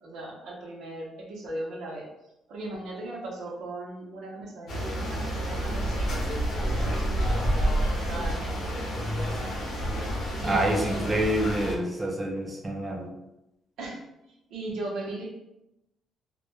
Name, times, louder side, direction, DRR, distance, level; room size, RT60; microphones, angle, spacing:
voice 1, 0.0-2.1 2.5-6.2 6.6-9.5 10.4-11.1 13.8-14.0 14.5-15.3, right 2 dB, 80° right, -1 dB, 0.6 m, -38 dB
sound 1, 4.7-11.7, equal, 65° left, 0.7 m, -29 dB
voice 2, 10.4-13.1, right 1 dB, 15° right, 1 dB, 0.4 m, -27 dB
2.1 x 2.1 x 2.9 m, 0.88 s
cardioid pair, 150°, 0 cm